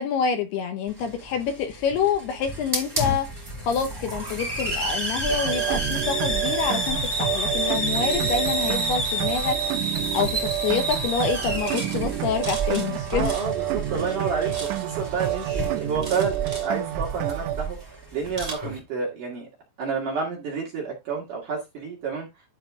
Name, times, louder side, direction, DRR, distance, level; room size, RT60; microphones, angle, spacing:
voice 1, 0.0-3.3 3.6-13.4, left 6 dB, 75° left, 2.5 m, -27 dB
Hiss, 0.9-18.8, right 1 dB, 5° right, 3.4 m, -30 dB
sound 1, 3.4-4.8 5.2-5.5 5.8-7.9 8.6-9.5 9.8-10.6 10.9-11.1 11.4-13.7 14.0-14.9 15.1-16.7 17.0-17.7 18.4-18.5, right 3 dB, 20° right, 2.3 m, -41 dB
sound 2, 5.3-17.6, right 14 dB, 80° right, 2.9 m, -29 dB
voice 2, 13.1-17.8 18.1-19.5 19.8-22.3, right 5 dB, 50° right, 2.9 m, -29 dB
11.5 x 4.8 x 3.6 m
omnidirectional pair, 5.8 m